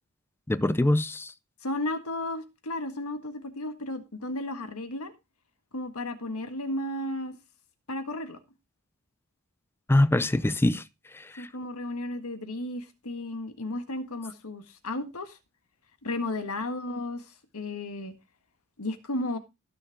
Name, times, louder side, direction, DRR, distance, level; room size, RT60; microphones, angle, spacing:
voice 1, 0.5-1.3 9.9-10.8 11.1-11.5, left 1 dB, 10° left, 0.5 m, -24 dB
voice 2, 1.6-5.1 5.7-7.4 7.9-8.4 11.4-15.4 16.0-18.1 18.8-19.4, left 1 dB, 75° left, 1.7 m, -34 dB
17.0 x 6.6 x 3.5 m
head